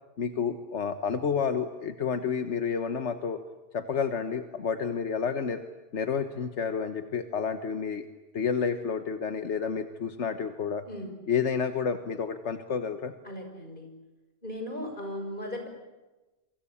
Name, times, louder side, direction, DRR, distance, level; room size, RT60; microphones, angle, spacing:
voice 1, 0.2-3.4 3.7-5.6 5.9-8.1 8.3-10.8 11.3-13.1, left 6 dB, 85° left, 8 dB, 1.5 m, -30 dB
voice 2, 13.2-13.9 14.4-15.7, left 1 dB, 45° left, 5 dB, 6.4 m, -37 dB
28.5 x 24.5 x 8.5 m, 1.1 s
omnidirectional pair, 1.2 m